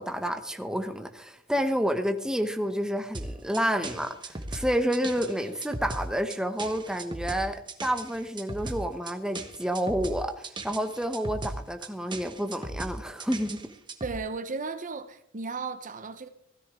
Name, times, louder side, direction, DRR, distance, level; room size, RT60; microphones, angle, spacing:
voice 1, 0.0-13.6, equal, 5° right, 0.9 m, -29 dB
sound 1, 3.1-14.2, right 2 dB, 20° right, 1.2 m, -37 dB
voice 2, 14.0-16.3, right 4 dB, 40° right, 0.9 m, -35 dB
16.5 x 13.5 x 3.7 m
head